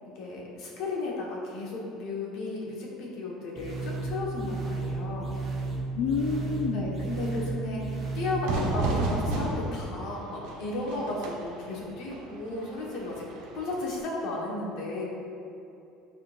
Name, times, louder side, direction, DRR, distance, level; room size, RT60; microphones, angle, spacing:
voice 1, 0.0-5.3 6.7-13.3 13.5-15.0, left 2 dB, 60° left, -3 dB, 1.4 m, -34 dB
sound 1, 3.6-8.7, right 3 dB, 25° right, 1.2 m, -33 dB
voice 2, 5.9-7.0, left 5 dB, 80° left, -1 dB, 0.5 m, -29 dB
Fire / Fireworks, 8.5-14.0, right 2 dB, 85° right, 1.1 m, -33 dB
9.8 x 4.4 x 2.6 m, 2.7 s
cardioid pair, 160°, 0 cm